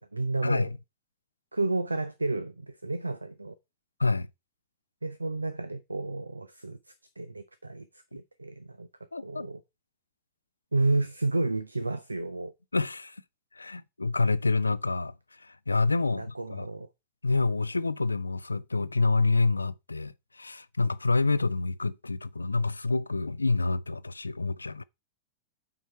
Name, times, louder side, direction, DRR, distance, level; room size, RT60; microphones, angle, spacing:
voice 1, 0.1-0.7 1.5-3.6 5.0-6.8 7.2-8.9 9.2-9.6 10.7-12.5 15.9-16.9, right 2 dB, 80° right, 0.5 m, -31 dB
voice 2, 9.1-9.5 12.7-13.2 13.6-15.1 15.4-16.7 17.2-24.8, left 3 dB, 80° left, 0.4 m, -27 dB
9.2 x 4.5 x 4.4 m
figure-of-eight pair, 90°, 0 cm